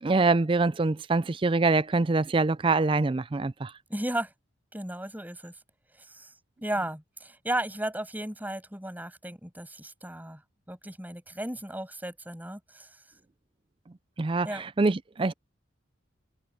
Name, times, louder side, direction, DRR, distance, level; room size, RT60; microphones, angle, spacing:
voice 1, 0.0-3.7 14.2-15.3, right 3 dB, 25° right, 0.4 m, -25 dB
voice 2, 3.6-4.3 4.7-5.5 6.0-6.3 6.6-10.4 10.7-13.0 14.4-14.6, right 1 dB, 10° right, 6.6 m, -35 dB
head